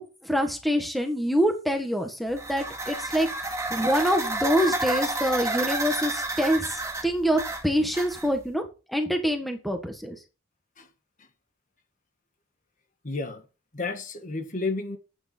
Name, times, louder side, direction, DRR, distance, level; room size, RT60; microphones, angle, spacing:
voice 1, 0.0-8.6 8.9-10.2, equal, ahead, 1.6 m, -26 dB
sound 1, 2.3-8.5, right 2 dB, 15° right, 2.3 m, -30 dB
voice 2, 13.0-13.4 13.7-15.0, left 3 dB, 40° left, 1.6 m, -31 dB
11.5 x 9.0 x 4.4 m
head